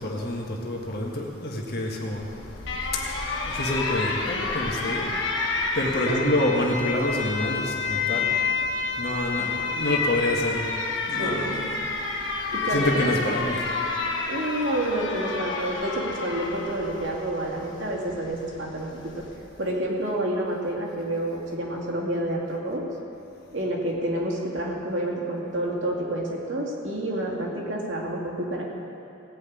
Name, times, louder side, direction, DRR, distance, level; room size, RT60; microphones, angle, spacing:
voice 1, 0.0-2.2 3.5-5.1 5.8-8.3 9.0-10.6 11.1-11.8 12.7-13.7, left 1 dB, 55° left, -1 dB, 1.6 m, -27 dB
Alarm, 2.1-19.4, left 4 dB, 70° left, 1.5 m, -30 dB
voice 2, 11.2-11.6 12.5-13.1 14.3-18.9 19.1-19.2 19.6-22.9 23.5-28.6, right 1 dB, 65° right, -2 dB, 2.4 m, -29 dB
17.5 x 5.8 x 8.5 m, 2.9 s
head